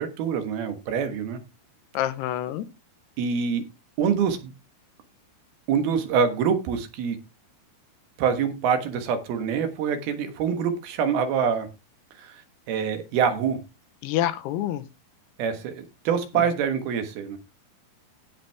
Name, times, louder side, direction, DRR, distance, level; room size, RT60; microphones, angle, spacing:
voice 1, 0.0-1.4 3.2-3.6 4.0-4.5 5.7-7.2 8.2-11.7 12.2-12.4 12.7-13.6 15.4-17.4, right 7 dB, 75° right, 3.2 m, -25 dB
voice 2, 2.0-2.6 14.0-14.8, left 12 dB, 90° left, 3.0 m, -27 dB
16.0 x 5.8 x 3.5 m
omnidirectional pair, 4.6 m